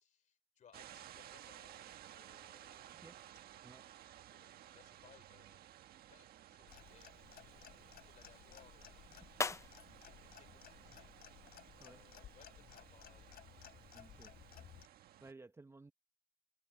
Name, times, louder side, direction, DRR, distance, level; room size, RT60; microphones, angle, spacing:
voice 1, 0.0-3.2 4.3-5.8 6.1-13.4, left 8 dB, 45° left, 3.5 m, -68 dB
sound 1, 0.7-15.3, right 12 dB, 65° right, 1.5 m, -57 dB
sound 2, 5.7-11.7, left 4 dB, 15° left, 0.5 m, -47 dB
Clock, 6.7-14.9, left 11 dB, 65° left, 3.7 m, -58 dB
voice 2, 9.1-9.6 11.5-12.0 13.9-14.3 15.2-15.9, right 3 dB, 15° right, 1.1 m, -58 dB
cardioid pair, 110°, 17 cm